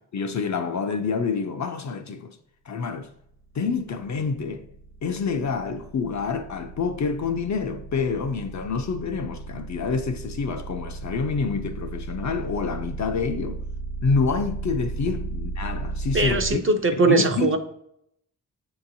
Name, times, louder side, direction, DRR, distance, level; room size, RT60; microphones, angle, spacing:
voice 1, 0.1-2.4 2.7-3.1 3.5-4.6 5.0-13.6 14.0-16.6 17.0-17.6, left 5 dB, 45° left, 0.4 m, -27 dB
sound 1, 3.2-16.5, right 3 dB, 80° left, 0.9 m, -35 dB
voice 2, 16.1-17.6, right 3 dB, 35° right, 0.4 m, -20 dB
6.5 x 2.9 x 2.6 m
cardioid pair, 60°, 41 cm